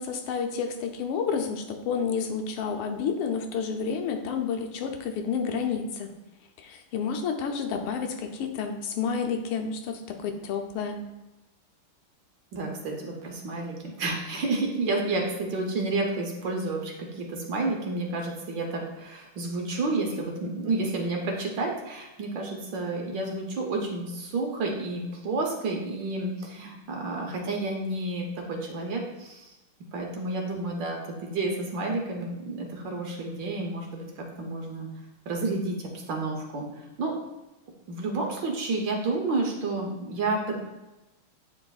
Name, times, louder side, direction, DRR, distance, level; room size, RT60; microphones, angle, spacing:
voice 1, 0.0-6.1 6.6-11.1, left 6 dB, 85° left, 5 dB, 1.6 m, -30 dB
voice 2, 12.5-29.5 29.9-34.9 35.3-37.1 37.9-40.5, right 2 dB, 65° right, 0 dB, 1.5 m, -30 dB
8.7 x 4.9 x 2.3 m, 1.0 s
omnidirectional pair, 2.4 m